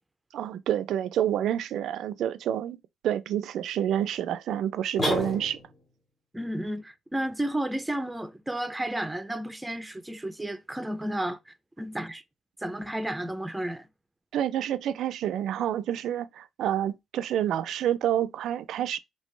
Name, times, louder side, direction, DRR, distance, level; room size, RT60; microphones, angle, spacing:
voice 1, 0.3-2.8 3.0-5.6 14.3-19.0, right 10 dB, 75° right, 0.3 m, -28 dB
sound 1, 5.0-5.9, left 1 dB, 35° left, 1.6 m, -29 dB
voice 2, 6.3-12.2 12.6-13.9, right 1 dB, 10° right, 0.5 m, -32 dB
3.1 x 2.8 x 3.2 m
cardioid pair, 90°, 0 cm